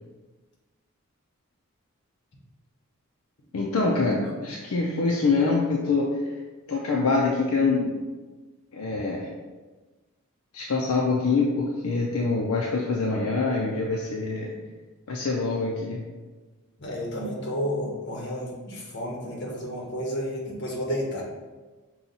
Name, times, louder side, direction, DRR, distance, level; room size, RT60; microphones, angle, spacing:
voice 1, 3.5-6.1 6.7-8.0 8.7-9.3 10.5-14.5 15.1-16.0, left 3 dB, 75° left, -2 dB, 0.5 m, -25 dB
voice 2, 4.1-4.4 14.5-14.7 16.8-21.2, equal, 50° left, -2 dB, 1.0 m, -31 dB
5.6 x 2.3 x 4.0 m, 1.3 s
head